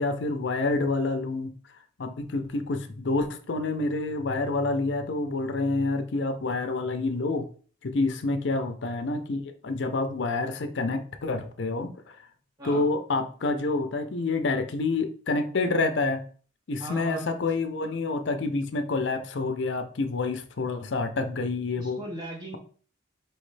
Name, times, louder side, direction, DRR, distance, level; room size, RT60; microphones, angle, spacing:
voice 1, 0.0-1.5 2.0-7.5 7.8-12.2 12.6-16.2 16.7-22.0, left 3 dB, 65° left, 8 dB, 0.5 m, -28 dB
voice 2, 16.8-17.3 21.8-22.6, right 2 dB, 20° right, -1 dB, 0.7 m, -39 dB
4.5 x 3.1 x 3.2 m, 0.43 s
head